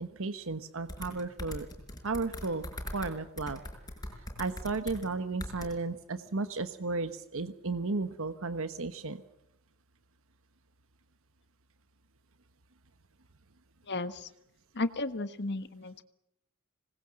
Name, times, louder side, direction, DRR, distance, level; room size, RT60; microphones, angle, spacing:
voice 1, 0.0-1.7 2.0-2.6 2.9-3.6 4.4-9.2, right 3 dB, 65° right, 10 dB, 1.1 m, -34 dB
sound 1, 0.9-3.1 3.4-5.1 5.4-5.7, left 1 dB, 20° left, 5.6 m, -40 dB
voice 2, 13.9-14.3 14.7-16.0, left 2 dB, 50° left, 11 dB, 1.4 m, -34 dB
26.0 x 20.0 x 7.6 m, 0.80 s
head